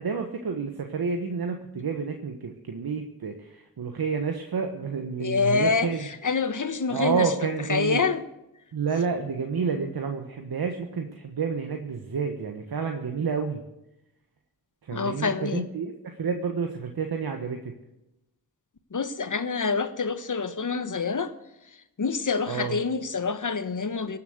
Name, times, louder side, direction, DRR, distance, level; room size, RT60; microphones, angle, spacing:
voice 1, 0.0-6.1 6.9-8.0 8.7-13.6 14.8-17.7 22.4-22.8, right 5 dB, 65° right, 1.4 m, -29 dB
voice 2, 5.2-7.3 7.7-8.2 14.9-15.6 18.9-21.3 22.0-24.2, left 4 dB, 50° left, 1.4 m, -26 dB
17.5 x 7.4 x 8.0 m
cardioid pair, 40°, 39 cm